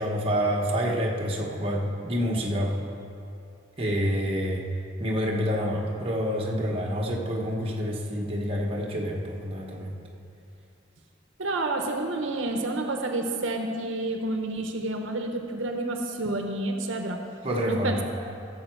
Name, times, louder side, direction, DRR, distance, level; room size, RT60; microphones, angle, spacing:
voice 1, 0.0-2.8 3.8-4.6 5.0-9.9 17.4-18.0, equal, 30° right, -2 dB, 1.3 m, -27 dB
voice 2, 11.4-17.2 17.7-18.0, right 2 dB, 85° right, 4 dB, 0.9 m, -29 dB
15.5 x 7.2 x 4.7 m, 2.5 s
head